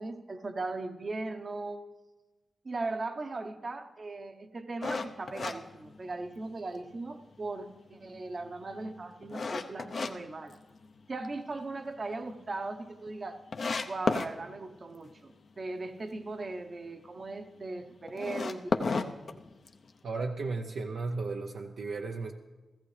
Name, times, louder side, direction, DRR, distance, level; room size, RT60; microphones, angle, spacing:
voice 1, 0.0-1.8 2.6-10.6 11.1-13.4 13.8-19.0, right 3 dB, 50° right, 8 dB, 0.9 m, -38 dB
sound 1, 4.8-6.5 6.9-7.0 7.6-10.1 10.5-11.3 11.6-11.7 12.1-12.2 12.3-12.4 13.1-13.2 13.5-14.3 18.1-19.9, left 4 dB, 65° left, 0.7 m, -32 dB
voice 2, 20.0-22.3, right 3 dB, 75° right, 2 dB, 0.6 m, -34 dB
16.5 x 14.5 x 3.3 m, 1.2 s
supercardioid pair, 40°, 0 cm